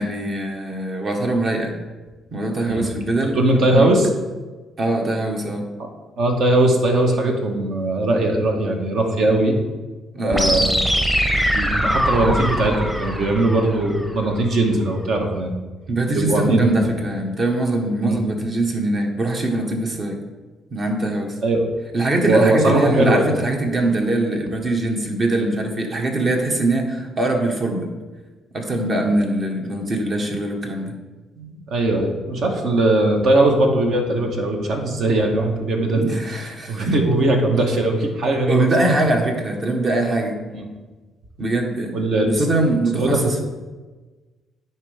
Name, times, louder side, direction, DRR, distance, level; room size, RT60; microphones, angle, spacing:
voice 1, 0.0-1.8 2.3-3.4 3.7-3.9 4.8-5.7 10.1-10.5 15.9-20.2 20.7-21.4 21.9-27.9 28.5-30.9 35.9-37.0 38.5-40.4 41.4-42.0 42.2-43.4, right 2 dB, 45° right, 2 dB, 1.4 m, -22 dB
voice 2, 3.3-4.1 5.8-5.9 6.2-9.6 10.2-10.7 11.5-15.5 16.1-16.9 18.0-18.2 21.4-21.7 22.2-23.2 31.4-36.1 36.7-38.6 40.5-40.7 41.9-42.3 42.9-43.4, right 2 dB, 65° right, 2 dB, 1.3 m, -19 dB
sound 1, 10.3-14.3, equal, 10° right, 1.0 m, -22 dB
9.8 x 4.5 x 3.5 m, 1.3 s
supercardioid pair, 75°, 0 cm